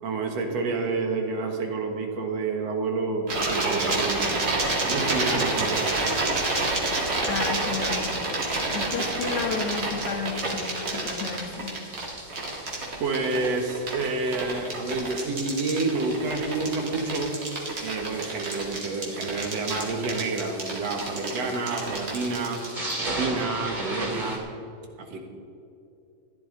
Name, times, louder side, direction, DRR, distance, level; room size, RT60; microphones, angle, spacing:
voice 1, 0.0-4.4 4.9-5.9 13.0-17.3 17.8-22.6 23.0-24.4 25.1-25.2, right 3 dB, 65° right, 3 dB, 2.4 m, -29 dB
sound 1, 3.3-22.7, right 2 dB, 40° right, 2.6 m, -28 dB
sound 2, 5.6-24.4, right 1 dB, 20° right, 1.8 m, -40 dB
voice 2, 7.3-11.7, left 5 dB, 90° left, 4 dB, 2.7 m, -32 dB
15.0 x 11.0 x 4.0 m, 2.6 s
omnidirectional pair, 3.3 m